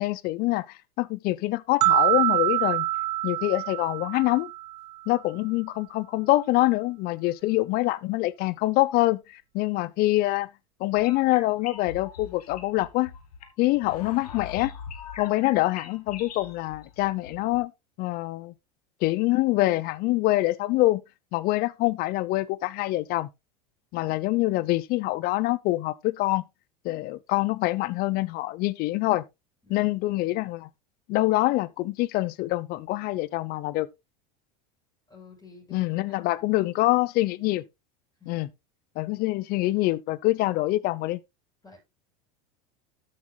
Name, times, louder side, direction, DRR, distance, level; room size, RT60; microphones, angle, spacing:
voice 1, 0.0-2.9 3.2-4.5 5.1-10.5 10.8-13.1 13.6-14.7 15.2-17.7 18.0-18.5 19.0-21.0 21.3-23.3 23.9-26.4 26.8-29.2 29.7-30.7 31.1-33.9 35.7-37.6 38.3-38.5 39.0-41.2, left 18 dB, 50° left, 0.7 m, -25 dB
sound 1, 1.8-4.9, right 17 dB, 80° right, 0.5 m, -25 dB
sound 2, 11.0-17.6, left 7 dB, 85° left, 1.5 m, -42 dB
voice 2, 29.6-30.0 35.1-37.0 38.2-38.5 41.6-41.8, left 4 dB, 20° left, 6.4 m, -52 dB
12.5 x 7.5 x 2.2 m
hypercardioid pair, 95°, 20 cm